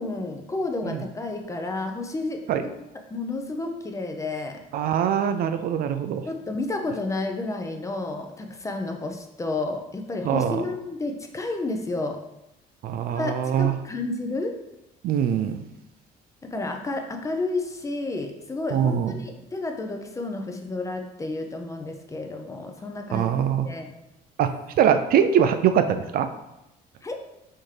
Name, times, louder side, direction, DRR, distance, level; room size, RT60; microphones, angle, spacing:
voice 1, 0.0-2.8 3.1-4.6 6.3-12.2 13.1-14.5 16.4-23.9 27.0-27.1, left 2 dB, 20° left, 4 dB, 0.5 m, -31 dB
voice 2, 4.7-6.2 10.2-10.6 12.8-13.7 15.0-15.6 18.7-19.1 23.1-23.7 24.4-24.5 24.8-26.3, right 8 dB, 60° right, 9 dB, 0.4 m, -22 dB
4.3 x 3.6 x 3.2 m, 0.90 s
cardioid pair, 110°, 17 cm